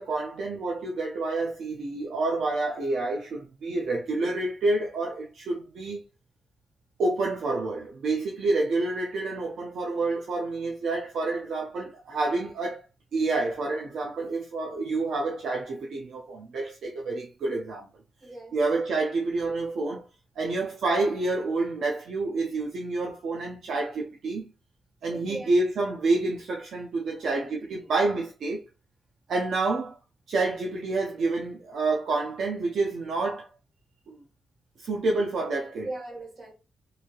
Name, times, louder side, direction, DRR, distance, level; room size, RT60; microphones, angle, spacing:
voice 1, 0.0-6.0 7.0-12.8 13.1-17.9 18.5-20.1 20.4-24.5 25.0-28.6 29.3-30.0 30.3-33.5 34.1-34.2 34.8-35.9, right 3 dB, 75° right, 0.6 m, -28 dB
voice 2, 18.2-18.6 20.4-20.5 25.1-25.6 27.2-27.5 35.8-36.5, right 2 dB, 45° right, 1.7 m, -39 dB
3.1 x 2.7 x 2.4 m
cardioid pair, 115°, 0 cm